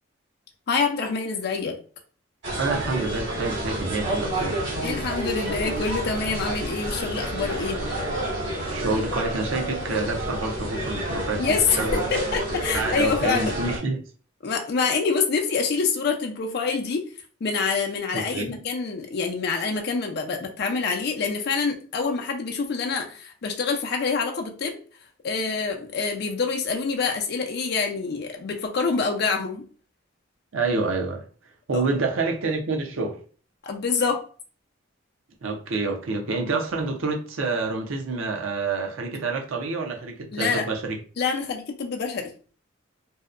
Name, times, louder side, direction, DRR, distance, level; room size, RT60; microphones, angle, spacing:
voice 1, 0.7-1.8 4.8-7.8 11.4-13.5 14.4-17.0 17.4-24.8 25.2-29.6 31.7-31.8 33.6-34.2 40.3-40.6 41.2-42.3, left 5 dB, 50° left, 0.4 m, -26 dB
sound 1, 2.4-13.8, right 1 dB, 60° right, 1.5 m, -29 dB
voice 2, 2.6-4.7 8.7-12.1 12.7-14.0 18.1-18.6 30.5-31.2 31.7-33.2 35.4-41.0, right 3 dB, 80° right, 0.6 m, -28 dB
2.7 x 2.1 x 2.4 m
head